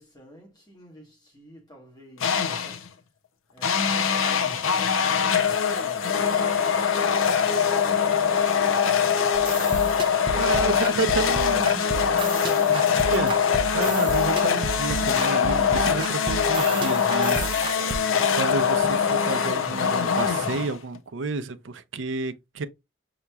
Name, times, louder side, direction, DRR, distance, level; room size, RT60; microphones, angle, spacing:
voice 1, 0.0-2.9 3.5-9.7 10.3-11.5 12.2-13.1 17.2-18.3, equal, 20° left, 1.6 m, -47 dB
sound 1, 2.2-2.9 3.6-21.0, left 7 dB, 85° left, 0.6 m, -23 dB
sound 2, 9.3-18.0, right 4 dB, 25° right, 0.6 m, -33 dB
voice 2, 10.4-12.6 13.0-13.4 13.7-17.8 18.4-22.6, right 3 dB, 70° right, 0.5 m, -30 dB
5.6 x 2.9 x 2.3 m
head